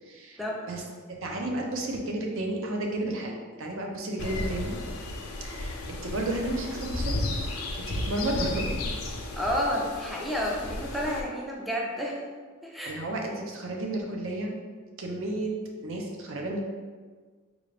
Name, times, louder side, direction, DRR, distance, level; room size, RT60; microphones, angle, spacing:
voice 1, 0.1-0.4 0.7-0.8 1.1-4.8 5.4-7.1 7.8-8.7 12.9-14.5 15.0-15.5 15.8-16.6, right 1 dB, 65° right, 1 dB, 0.6 m, -32 dB
sound 1, 4.2-11.2, left 2 dB, 85° left, 0.5 m, -33 dB
voice 2, 9.4-12.2 12.6-13.1, equal, ahead, -3 dB, 0.4 m, -30 dB
3.7 x 2.4 x 3.2 m, 1.5 s
head